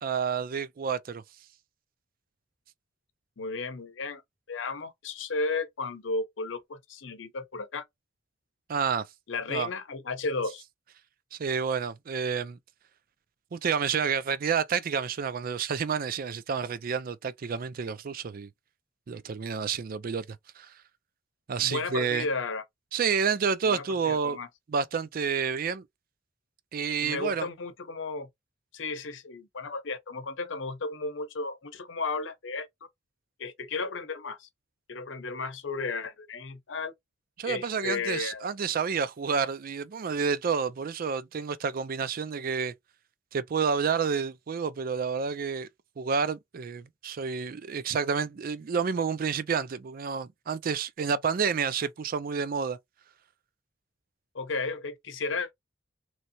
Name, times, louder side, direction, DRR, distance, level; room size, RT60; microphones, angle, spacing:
voice 1, 0.0-1.2 8.7-9.1 9.5-9.7 11.3-12.6 13.5-18.5 19.1-20.2 20.6-20.7 21.5-22.3 22.9-24.4 24.7-25.8 26.7-27.5 37.4-42.7 43.3-45.7 46.0-52.8, right 6 dB, 50° right, 0.4 m, -29 dB
voice 2, 3.4-4.2 4.5-7.8 9.3-10.6 21.6-22.6 23.6-24.5 27.0-28.3 28.7-32.7 33.4-34.5 34.9-36.9 37.4-38.5 54.3-55.5, left 3 dB, 85° left, 0.8 m, -34 dB
3.1 x 2.7 x 2.6 m
head